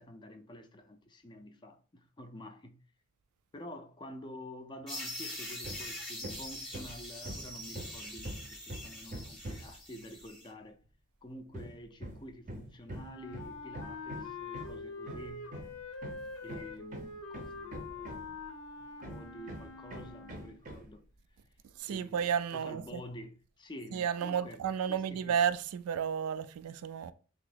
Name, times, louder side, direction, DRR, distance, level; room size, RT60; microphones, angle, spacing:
voice 1, 0.0-2.8 3.5-10.8 11.2-15.5 16.4-18.4 18.8-21.1 21.9-25.4, left 1 dB, 20° left, 0.4 m, -49 dB
sound 1, 4.9-10.5, left 1 dB, ahead, 0.8 m, -43 dB
Hammer, 5.6-5.9 6.2-9.8 11.5-18.5 19.0-20.9, right 1 dB, 35° right, 0.5 m, -44 dB
Wind instrument woodwind instrument, 12.9-20.6, left 4 dB, 85° left, 0.7 m, -45 dB
voice 2, 21.8-23.0 23.9-27.1, right 8 dB, 85° right, 0.3 m, -32 dB
2.9 x 2.7 x 3.9 m
head